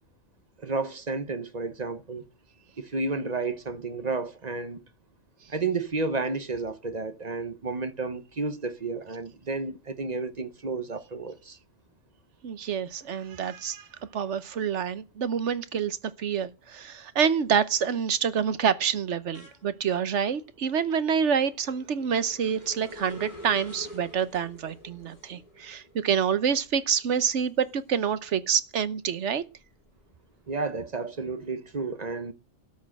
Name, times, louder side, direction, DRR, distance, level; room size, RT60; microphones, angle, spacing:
voice 1, 0.6-2.2 2.8-4.8 5.5-11.6 30.5-32.3, right 3 dB, 40° right, 0.9 m, -31 dB
voice 2, 12.4-13.9 14.1-29.4, right 7 dB, 75° right, 1.2 m, -27 dB
sound 1, 16.6-16.8 17.2-28.5 28.9-30.6, left 1 dB, 35° left, 3.6 m, -49 dB
13.0 x 6.3 x 7.7 m
omnidirectional pair, 1.2 m